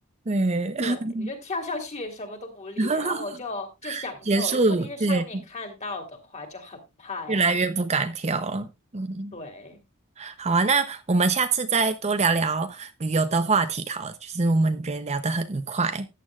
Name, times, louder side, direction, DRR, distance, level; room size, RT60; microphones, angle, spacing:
voice 1, 0.3-1.3 2.8-3.2 3.8-5.4 7.3-8.7 8.9-9.4 10.2-16.1, right 3 dB, 30° right, 0.6 m, -24 dB
voice 2, 0.8-7.6 9.3-9.8, left 3 dB, 30° left, 2.8 m, -36 dB
14.0 x 9.4 x 2.4 m
head